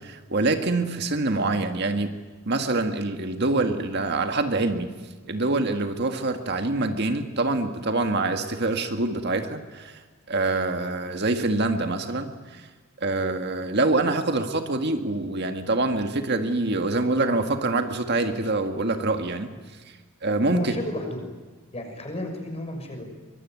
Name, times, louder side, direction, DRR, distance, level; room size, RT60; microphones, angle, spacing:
voice 1, 0.0-2.1 2.5-4.9 5.3-10.0 10.3-12.7 13.0-19.5 20.2-20.7, right 2 dB, 50° right, 6 dB, 1.8 m, -25 dB
voice 2, 20.5-21.2 21.7-23.0, left 1 dB, 30° left, 4 dB, 6.2 m, -32 dB
24.0 x 23.5 x 9.6 m, 1.4 s
head